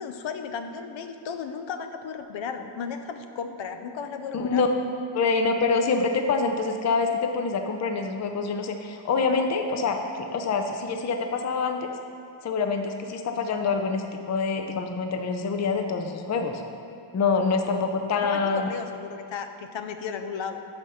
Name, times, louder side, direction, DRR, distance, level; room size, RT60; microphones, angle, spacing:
voice 1, 0.0-4.7 18.2-20.6, left 6 dB, 80° left, 7 dB, 0.6 m, -34 dB
voice 2, 4.3-4.7 5.1-11.9 12.4-16.6 17.1-18.7, left 4 dB, 40° left, 5 dB, 0.4 m, -26 dB
6.3 x 5.1 x 5.5 m, 2.6 s
wide cardioid pair, 145°, 45 cm